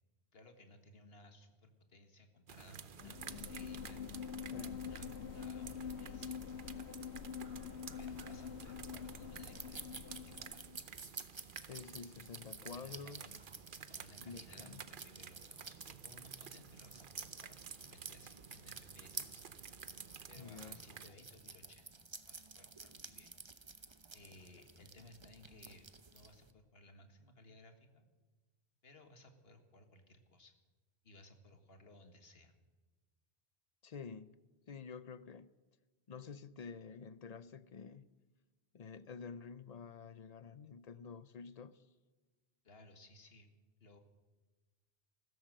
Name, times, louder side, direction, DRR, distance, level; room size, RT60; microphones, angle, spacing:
voice 1, 0.3-4.2 4.6-6.6 8.0-10.7 12.6-13.4 13.9-19.5 20.3-21.9 22.3-23.4 24.1-28.1 28.8-30.5 31.0-32.5 42.6-43.5 43.8-44.0, left 1 dB, 65° left, 1.9 m, -60 dB
sound 1, 2.5-21.1, right 7 dB, 55° right, 0.9 m, -53 dB
sound 2, 3.0-10.8, left 7 dB, 90° left, 1.0 m, -46 dB
voice 2, 4.5-4.8 11.7-13.3 14.2-14.8 20.4-20.8 33.8-34.4 34.7-35.5 36.1-38.1 38.7-41.8, left 5 dB, 45° left, 0.6 m, -49 dB
sound 3, 7.9-26.5, right 4 dB, 30° right, 0.9 m, -52 dB
15.5 x 13.5 x 6.5 m
omnidirectional pair, 1.1 m